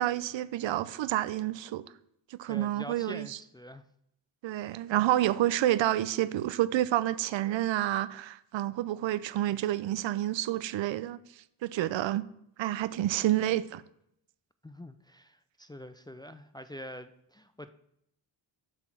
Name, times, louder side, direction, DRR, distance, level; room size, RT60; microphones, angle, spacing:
voice 1, 0.0-1.8 2.3-3.4 4.4-12.2 12.6-13.8, right 13 dB, 75° right, 0.6 m, -29 dB
voice 2, 2.4-3.8 14.6-17.7, equal, 10° left, 0.3 m, -45 dB
7.8 x 5.8 x 6.1 m
cardioid pair, 100°, 46 cm